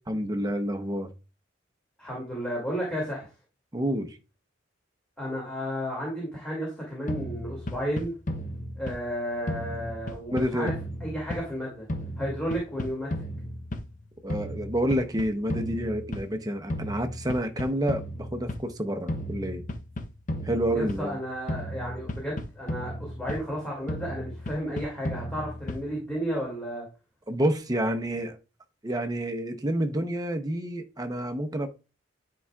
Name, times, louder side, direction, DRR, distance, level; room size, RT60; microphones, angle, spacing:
voice 1, 0.1-1.1 3.7-4.2 10.3-10.7 14.2-19.6 20.4-21.2 27.3-28.4 28.8-31.7, right 1 dB, 20° right, 0.8 m, -29 dB
voice 2, 2.0-3.3 5.2-8.1 8.7-10.7 11.0-11.9 12.2-13.1 20.7-26.9, equal, 5° left, 2.3 m, -33 dB
sound 1, 7.1-9.2 9.5-11.6 11.9-14.0 14.3-16.4 16.7-18.7 19.1-21.2 21.5-23.6 23.9-26.0, left 1 dB, 40° left, 0.8 m, -34 dB
9.9 x 4.7 x 2.3 m
head